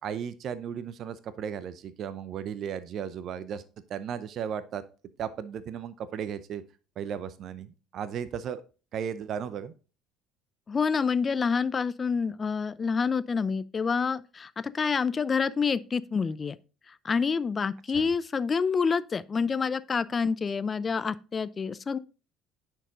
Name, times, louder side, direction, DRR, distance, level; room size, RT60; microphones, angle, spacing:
voice 1, 0.0-3.6 3.9-4.8 5.2-6.6 7.0-8.6 8.9-9.7 17.9-18.1, right 8 dB, 55° right, 0.6 m, -35 dB
voice 2, 10.7-16.6 17.0-22.0, left 5 dB, 35° left, 0.5 m, -27 dB
9.9 x 4.6 x 3.7 m
hypercardioid pair, 70°, 0 cm